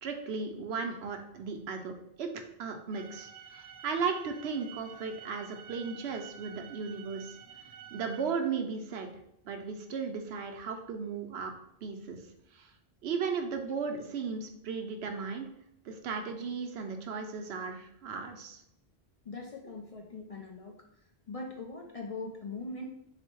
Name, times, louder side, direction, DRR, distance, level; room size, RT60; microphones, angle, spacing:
voice 1, 0.0-1.9 2.2-2.3 2.6-7.3 7.9-9.1 9.4-11.5 11.8-12.2 12.5-12.7 13.0-15.5 15.8-18.6, right 5 dB, 80° right, 5 dB, 0.9 m, -35 dB
sound 1, 2.9-8.2, right 9 dB, 60° right, 0.6 m, -50 dB
voice 2, 19.2-20.8 21.3-22.8, left 3 dB, 50° left, 0 dB, 0.5 m, -41 dB
4.1 x 2.1 x 4.4 m, 0.75 s
omnidirectional pair, 1.1 m